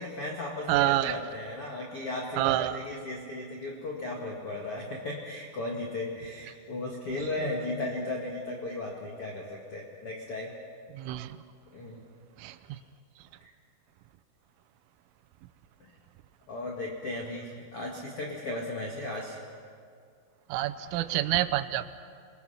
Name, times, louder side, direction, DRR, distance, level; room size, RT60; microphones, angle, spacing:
voice 1, 0.0-10.5 11.7-12.0 12.7-12.8 13.4-13.5 15.8-15.9 16.5-19.4, left 2 dB, 50° left, -1 dB, 1.8 m, -36 dB
voice 2, 0.7-1.2 2.4-2.8 10.9-11.4 12.4-12.6 20.5-21.9, right 14 dB, 85° right, 11 dB, 3.3 m, -27 dB
28.0 x 21.5 x 5.8 m, 2.3 s
omnidirectional pair, 5.7 m